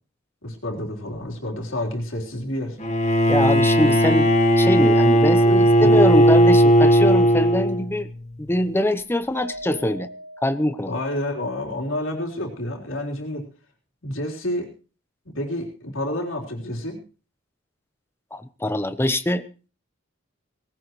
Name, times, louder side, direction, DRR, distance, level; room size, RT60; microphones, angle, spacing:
voice 1, 0.4-2.8 5.6-5.9 10.9-13.4 14.0-14.7 15.3-17.0, left 1 dB, 85° left, 0 dB, 3.9 m, -29 dB
Bowed string instrument, 2.8-8.1, equal, 35° left, 1.5 m, -16 dB
voice 2, 3.3-8.1 8.4-10.1 10.4-11.0 18.3-19.5, left 1 dB, 10° left, 12 dB, 0.8 m, -23 dB
Mallet percussion, 9.3-11.6, right 1 dB, 60° right, 6.5 m, -40 dB
19.0 x 17.0 x 3.1 m, 0.35 s
head